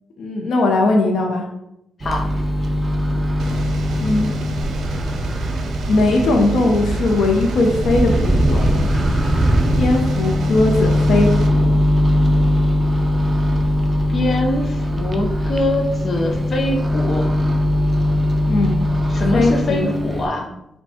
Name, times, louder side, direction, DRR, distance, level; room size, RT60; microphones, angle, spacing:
voice 1, 0.2-1.4 4.0-4.3 5.9-8.9 9.8-11.7 18.5-18.9 19.3-19.9, left 2 dB, 80° left, 1 dB, 0.7 m, -19 dB
Microwave oven, 2.0-20.3, left 1 dB, 25° right, 0.5 m, -20 dB
sound 1, 3.4-11.5, right 3 dB, 85° right, 0.5 m, -29 dB
voice 2, 14.1-17.3 19.1-20.5, left 2 dB, 50° left, 2 dB, 0.6 m, -23 dB
4.4 x 2.2 x 4.2 m, 0.82 s
cardioid pair, 105°, 0 cm